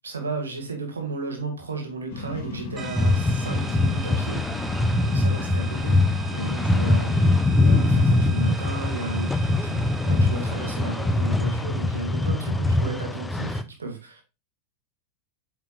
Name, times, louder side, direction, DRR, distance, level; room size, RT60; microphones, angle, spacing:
voice 1, 0.0-7.1 7.5-14.2, right 3 dB, 70° right, 2 dB, 2.4 m, -34 dB
sound 1, 2.1-7.3, left 3 dB, 50° left, 3.3 m, -35 dB
sound 2, 2.8-12.1, right 6 dB, 20° right, 0.8 m, -42 dB
sound 3, 3.0-13.6, left 2 dB, 10° left, 0.6 m, -22 dB
8.6 x 5.9 x 2.5 m, 0.27 s
figure-of-eight pair, 90°, 0 cm